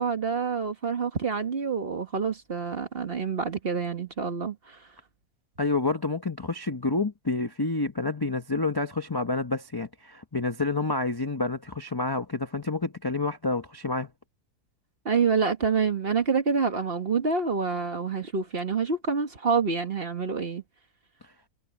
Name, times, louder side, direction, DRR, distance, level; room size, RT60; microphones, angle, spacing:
voice 1, 0.0-4.8 15.0-20.6, right 5 dB, 35° right, 1.6 m, -27 dB
voice 2, 5.6-14.1, left 3 dB, 20° left, 0.6 m, -28 dB
omnidirectional pair, 1.8 m